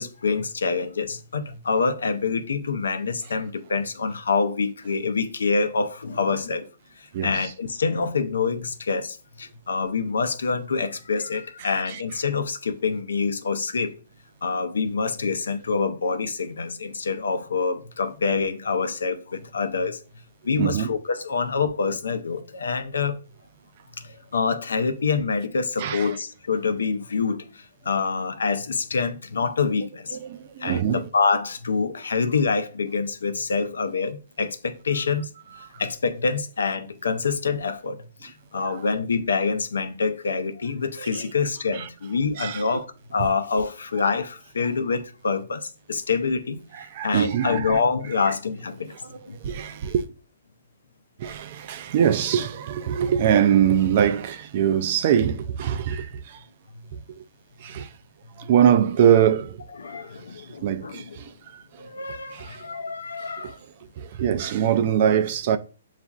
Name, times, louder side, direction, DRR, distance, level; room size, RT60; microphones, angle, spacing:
voice 1, 0.0-6.7 7.0-13.9 14.4-20.0 20.4-23.2 23.9-30.2 30.6-35.3 35.8-49.4 56.7-56.9 58.4-58.5 59.8-61.0 61.8-63.6, left 4 dB, 85° left, 0.5 m, -26 dB
voice 2, 7.1-7.5 11.6-12.0 20.6-20.9 25.8-26.2 30.1-31.1 38.5-38.8 41.0-41.3 41.7-41.9 42.4-42.6 46.7-47.8 49.1-50.0 51.2-56.5 56.9-57.2 57.6-57.9 58.4-59.6 59.9-60.1 60.3-61.9 62.3-62.6 63.4-63.6 64.0-65.6, right 9 dB, 45° right, 0.3 m, -23 dB
6.9 x 2.4 x 2.3 m
hypercardioid pair, 145°, 0 cm